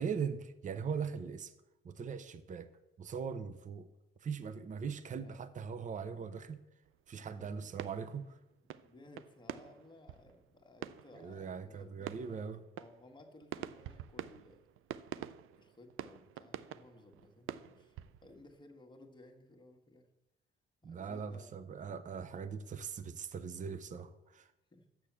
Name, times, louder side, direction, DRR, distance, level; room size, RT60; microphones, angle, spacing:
voice 1, 0.0-1.5 1.8-2.7 3.0-3.9 4.2-6.6 7.1-8.4 11.2-12.6 20.8-24.5, right 6 dB, 40° right, 12 dB, 0.6 m, -40 dB
voice 2, 5.1-5.7 7.2-7.7 8.8-14.6 15.6-20.1 20.8-21.9 24.7-25.1, left 2 dB, 20° left, 3 dB, 1.4 m, -59 dB
sound 1, 6.8-7.4 7.6-8.4 8.7-18.6, right 11 dB, 85° right, 0.4 m, -47 dB
6.9 x 6.7 x 7.3 m, 0.94 s
cardioid pair, 115°, 20 cm